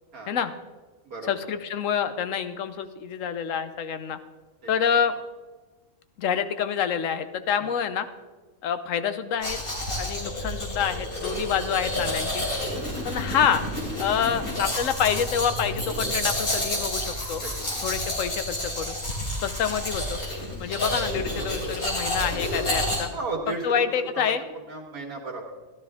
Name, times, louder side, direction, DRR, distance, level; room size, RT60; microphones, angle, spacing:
voice 1, 1.3-4.2 4.7-5.1 6.2-8.1 8.6-9.6 10.0-12.4 13.0-13.6 14.0-17.4 17.8-19.0 19.4-20.2 20.6-23.1 23.5-24.4, left 8 dB, 65° left, 11 dB, 1.1 m, -27 dB
Domestic sounds home sounds, 9.4-23.0, left 1 dB, 85° left, 3.9 m, -30 dB
voice 2, 14.2-14.5 17.4-17.7 23.1-24.2 24.7-25.5, right 3 dB, 90° right, -1 dB, 1.9 m, -35 dB
14.0 x 12.5 x 3.5 m, 1.3 s
omnidirectional pair, 1.5 m